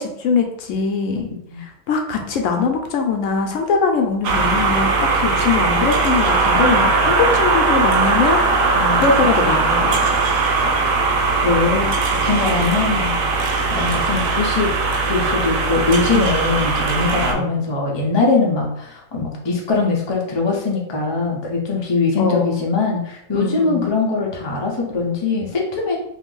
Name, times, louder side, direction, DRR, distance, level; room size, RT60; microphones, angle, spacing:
voice 1, 0.0-1.3 1.9-4.9 5.1-10.2 13.7-14.0 17.3-17.5 22.2-22.6 23.3-23.9, left 4 dB, 75° left, 3 dB, 0.9 m, -22 dB
sound 1, 4.2-17.3, right 3 dB, 85° right, 1.0 m, -19 dB
voice 2, 8.8-9.2 11.4-13.1 13.7-14.7 15.1-26.0, left 4 dB, 35° left, -1 dB, 0.4 m, -21 dB
2.6 x 2.5 x 3.7 m, 0.73 s
omnidirectional pair, 1.4 m